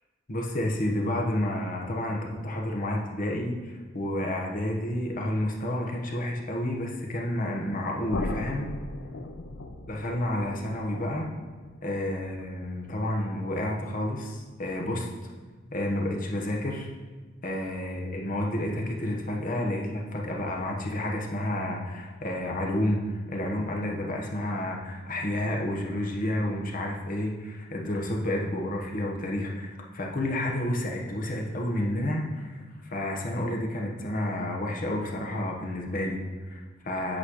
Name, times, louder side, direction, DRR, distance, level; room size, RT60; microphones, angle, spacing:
voice 1, 0.3-8.7 9.9-11.3 11.8-15.1 15.7-16.9 17.4-23.0 23.3-29.7 29.9-32.6 32.9-37.2, left 1 dB, 45° left, 0 dB, 1.1 m, -30 dB
sound 1, 8.1-14.0, left 2 dB, 85° left, 0.6 m, -39 dB
8.6 x 3.2 x 6.4 m, 1.4 s
head